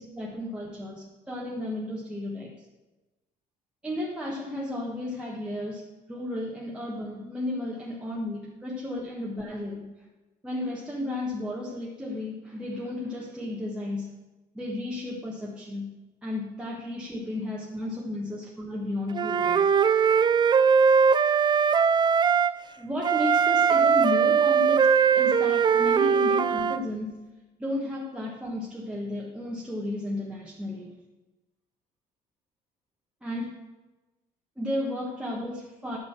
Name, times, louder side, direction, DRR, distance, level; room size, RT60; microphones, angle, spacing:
voice 1, 0.0-2.6 3.8-5.8 6.1-9.9 10.4-14.1 14.5-15.9 16.2-19.6 22.8-24.8 25.1-27.1 27.6-30.9 33.2-33.6 34.6-36.0, left 1 dB, 5° right, -4 dB, 1.3 m, -33 dB
Wind instrument woodwind instrument, 19.1-22.5 23.0-26.8, right 6 dB, 25° right, 0.3 m, -21 dB
8.5 x 6.5 x 5.8 m, 1.1 s
cardioid pair, 110°, 17 cm